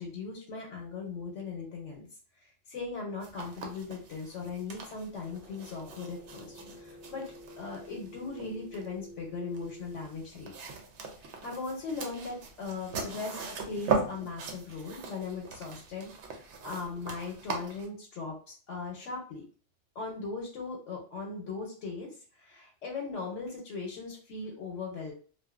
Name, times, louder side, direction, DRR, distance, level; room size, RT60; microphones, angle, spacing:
voice 1, 0.0-2.1 2.4-7.2 7.6-10.5 11.2-19.4 19.9-25.1, left 4 dB, 80° left, -1 dB, 1.0 m, -39 dB
sound 1, 3.2-17.9, right 4 dB, 75° right, 0.9 m, -39 dB
sound 2, 5.2-10.1, left 1 dB, 60° left, 0.7 m, -49 dB
2.5 x 2.1 x 2.3 m, 0.42 s
omnidirectional pair, 1.2 m